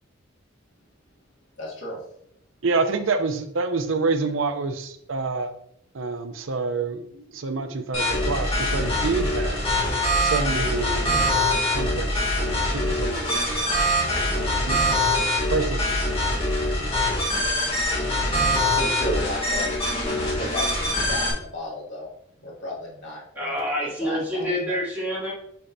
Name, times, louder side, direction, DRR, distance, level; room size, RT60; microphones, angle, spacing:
voice 1, 1.6-2.0 18.7-19.8 20.4-22.1 22.4-23.5 23.8-24.5, left 1 dB, 60° left, -5 dB, 2.3 m, -33 dB
voice 2, 2.6-5.5 5.9-9.7 10.2-11.3 11.7-13.6 14.3-16.1, right 4 dB, 75° right, 8 dB, 0.6 m, -28 dB
sound 1, 7.9-21.3, left 1 dB, 25° left, 2.1 m, -24 dB
voice 3, 23.3-25.3, equal, 10° right, -7 dB, 2.6 m, -27 dB
6.9 x 5.8 x 2.7 m, 0.72 s
head